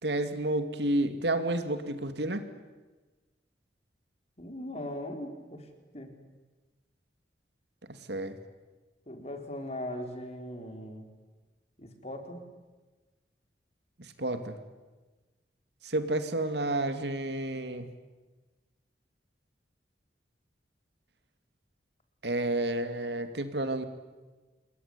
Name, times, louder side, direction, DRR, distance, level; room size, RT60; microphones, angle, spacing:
voice 1, 0.0-2.4 8.1-8.4 14.0-14.5 15.8-17.9 22.2-23.8, right 1 dB, 70° right, 9 dB, 2.5 m, -30 dB
voice 2, 4.4-5.7 5.9-6.1 9.1-11.1 11.8-12.5, left 1 dB, 35° left, 5 dB, 4.1 m, -39 dB
27.0 x 22.0 x 9.8 m, 1.2 s
head